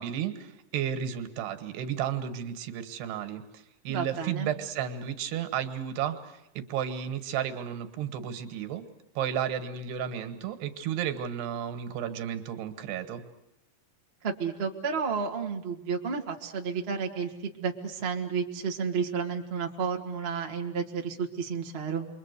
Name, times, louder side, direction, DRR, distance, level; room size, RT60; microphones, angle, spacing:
voice 1, 0.0-8.8 9.2-13.2, right 9 dB, 80° right, 9 dB, 3.5 m, -33 dB
voice 2, 3.9-4.5 14.2-22.1, right 5 dB, 35° right, 2 dB, 0.9 m, -31 dB
29.0 x 23.0 x 8.2 m, 0.85 s
omnidirectional pair, 4.7 m